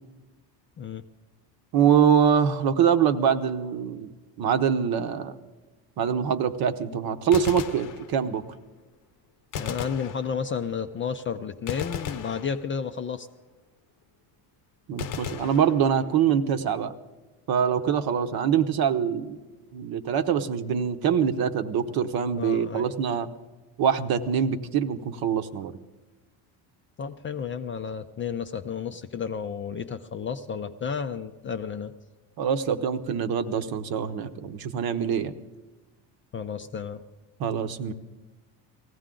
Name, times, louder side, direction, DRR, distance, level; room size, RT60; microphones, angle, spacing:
voice 1, 1.7-4.1 4.4-5.3 6.0-8.4 14.9-16.9 17.5-19.4 19.7-23.3 23.8-25.7 32.4-35.3 37.4-37.9, right 8 dB, 50° right, 10 dB, 1.0 m, -24 dB
Gunshot gunfire, 7.3-8.5 9.5-10.8 11.7-13.1 15.0-16.3, left 8 dB, 45° left, 0.8 m, -37 dB
voice 2, 9.6-13.3 22.4-22.9 27.0-31.9 36.3-37.0, left 6 dB, 25° left, 8 dB, 0.4 m, -32 dB
18.5 x 15.5 x 3.8 m, 1.2 s
supercardioid pair, 110°, 46 cm